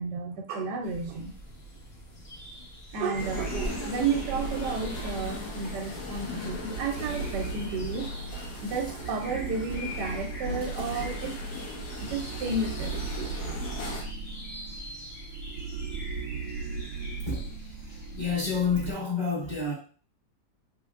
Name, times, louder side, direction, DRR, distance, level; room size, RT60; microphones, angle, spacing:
voice 1, 0.0-1.3 2.9-8.1 8.6-11.4 12.0-12.9 13.2-13.4, right 4 dB, 90° right, 3 dB, 1.3 m, -32 dB
sound 1, 0.8-18.6, left 1 dB, 55° left, 1.2 m, -45 dB
sound 2, 3.1-14.0, left 2 dB, 70° left, 1.4 m, -39 dB
sound 3, 4.0-5.8 6.4-18.9, right 4 dB, 70° right, 1.0 m, -37 dB
voice 2, 17.2-19.7, left 4 dB, 15° left, -7 dB, 1.4 m, -30 dB
3.4 x 3.4 x 2.4 m, 0.39 s
omnidirectional pair, 1.8 m